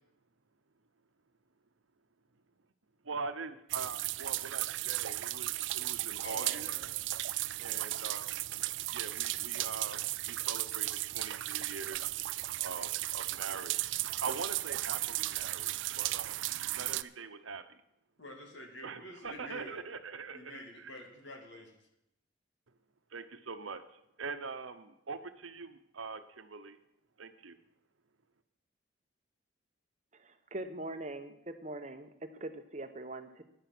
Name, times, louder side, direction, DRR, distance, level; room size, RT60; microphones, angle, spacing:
voice 1, 3.0-6.7 7.6-8.3 8.9-12.2 12.6-16.4 16.7-17.8 18.8-20.9 23.1-26.8 27.2-27.6, right 4 dB, 85° right, 10 dB, 0.9 m, -43 dB
sound 1, 3.7-17.0, right 17 dB, 70° right, 0.4 m, -35 dB
voice 2, 6.2-6.9 18.2-19.8 20.3-21.8, left 1 dB, 65° left, 2 dB, 2.7 m, -47 dB
voice 3, 30.5-33.4, right 2 dB, 35° right, 8 dB, 1.0 m, -42 dB
11.0 x 10.5 x 6.1 m, 0.79 s
head